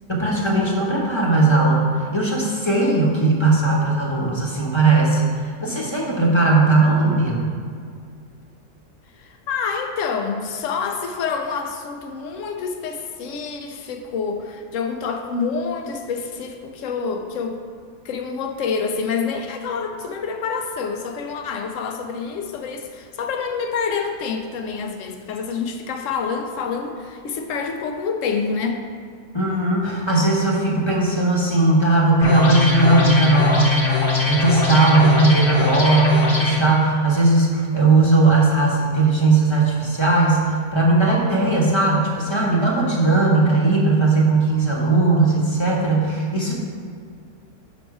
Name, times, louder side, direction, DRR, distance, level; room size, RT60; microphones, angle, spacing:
voice 1, 0.1-1.8 2.1-7.4 29.3-33.9 34.3-46.6, right 3 dB, 20° left, -3 dB, 1.0 m, -18 dB
voice 2, 9.1-17.6 18.0-28.8, left 5 dB, 65° left, 5 dB, 1.0 m, -27 dB
sound 1, 32.2-36.6, left 4 dB, 40° left, 1.2 m, -21 dB
6.2 x 5.8 x 4.8 m, 2.1 s
omnidirectional pair, 1.6 m